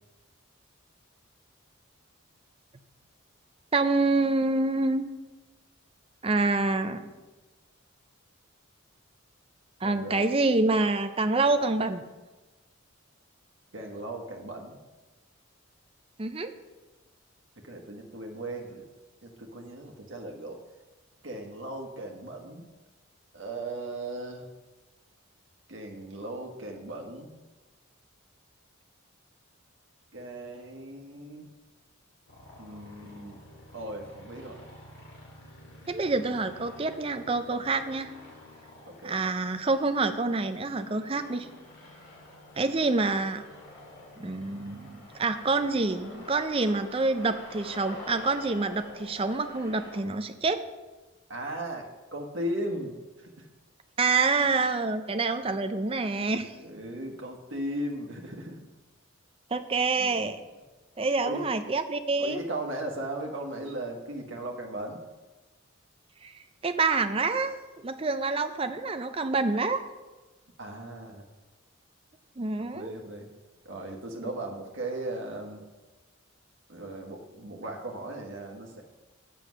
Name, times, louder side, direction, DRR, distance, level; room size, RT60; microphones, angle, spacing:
voice 1, 3.7-5.1 6.2-7.1 9.8-12.0 16.2-16.5 35.9-38.1 39.0-41.5 42.6-43.4 44.2-50.6 54.0-56.5 59.5-60.4 61.0-62.4 66.2-66.3 66.6-69.8 72.4-72.9 74.2-74.3, right 3 dB, 25° right, 9 dB, 0.5 m, -27 dB
voice 2, 9.8-10.3 13.7-14.8 17.6-18.9 19.2-20.6 21.2-22.7 23.3-24.5 25.7-27.3 30.1-31.5 32.6-33.4 33.7-34.7 38.9-39.2 51.3-53.5 54.6-54.7 56.5-58.6 60.0-60.2 61.2-61.5 62.2-65.0 70.6-71.3 72.6-73.3 73.6-75.6 76.7-78.8, right 1 dB, 60° right, 1 dB, 1.3 m, -37 dB
sound 1, 32.3-50.0, left 2 dB, 55° left, 2.2 m, -48 dB
7.6 x 6.9 x 6.2 m, 1.2 s
head